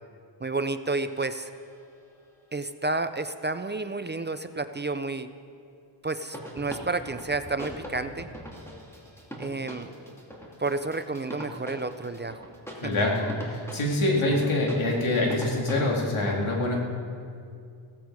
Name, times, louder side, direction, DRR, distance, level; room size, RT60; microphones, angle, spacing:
voice 1, 0.4-1.5 2.5-5.3 6.0-8.3 9.4-9.9 10.6-12.5 12.8-12.9, right 3 dB, 25° right, 10 dB, 0.4 m, -30 dB
sound 1, 0.9-2.0 6.3-15.9, equal, 5° left, 2.5 m, -42 dB
voice 2, 12.8-16.8, left 2 dB, 90° left, -1 dB, 2.6 m, -25 dB
16.0 x 14.5 x 4.8 m, 2.4 s
wide cardioid pair, 105°, 47 cm